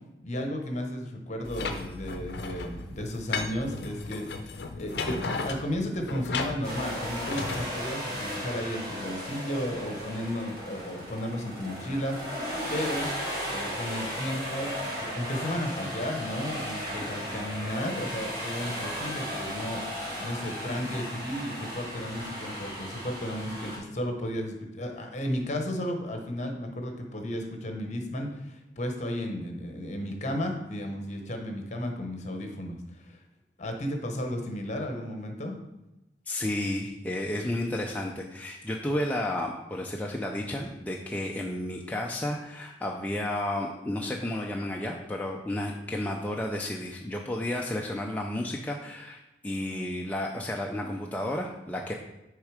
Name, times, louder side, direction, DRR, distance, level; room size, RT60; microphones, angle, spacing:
voice 1, 0.2-12.2 12.7-13.1 13.5-33.2 33.6-35.5, equal, 40° left, 3 dB, 0.9 m, -34 dB
sound 1, 1.5-7.7, left 4 dB, 65° left, 0.6 m, -35 dB
sound 2, 6.6-23.8, equal, 25° right, 2.0 m, -36 dB
voice 2, 36.3-51.9, left 1 dB, 10° left, -1 dB, 0.4 m, -32 dB
6.5 x 3.6 x 4.9 m, 0.95 s
head